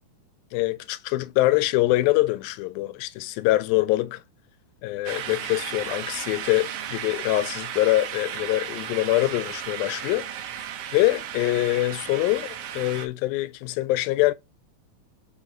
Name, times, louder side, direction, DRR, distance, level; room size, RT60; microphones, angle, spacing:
voice 1, 0.5-4.2 4.8-10.3 10.9-14.3, left 17 dB, 90° left, 2.4 m, -24 dB
sound 1, 5.0-13.1, right 9 dB, 80° right, 1.4 m, -35 dB
5.6 x 3.9 x 6.0 m
omnidirectional pair, 4.1 m